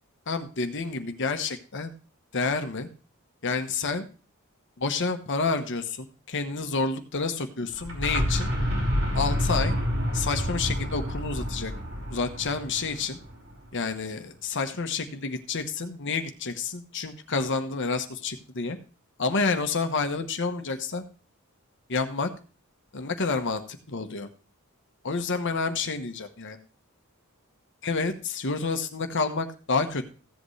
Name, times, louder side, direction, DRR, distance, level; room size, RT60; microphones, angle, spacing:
voice 1, 0.3-1.9 2.3-2.9 3.4-4.1 4.8-8.5 9.1-9.7 10.1-11.7 12.1-13.2 13.7-18.8 19.2-21.0 21.9-22.3 22.9-24.3 25.0-26.6 27.8-30.1, left 4 dB, 60° left, 7 dB, 1.1 m, -29 dB
sound 1, 7.7-13.5, equal, 70° right, 5.0 m, -28 dB
15.5 x 8.0 x 3.2 m, 0.37 s
head